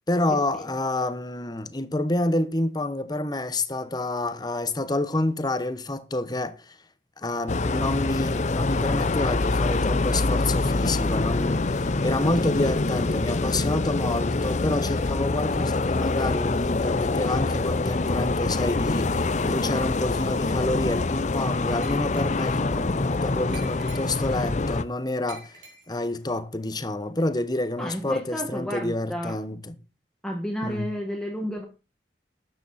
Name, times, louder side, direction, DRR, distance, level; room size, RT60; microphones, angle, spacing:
voice 1, 0.1-6.8 7.2-29.7 30.6-30.9, left 2 dB, 25° left, 1.1 m, -28 dB
sound 1, 7.5-24.8, left 3 dB, 40° left, 0.7 m, -25 dB
Glass, 21.8-22.6 23.5-24.5 25.3-26.2, right 4 dB, 85° right, 4.9 m, -47 dB
voice 2, 27.8-29.4 30.2-31.6, equal, 5° left, 1.5 m, -31 dB
12.5 x 9.1 x 4.2 m
head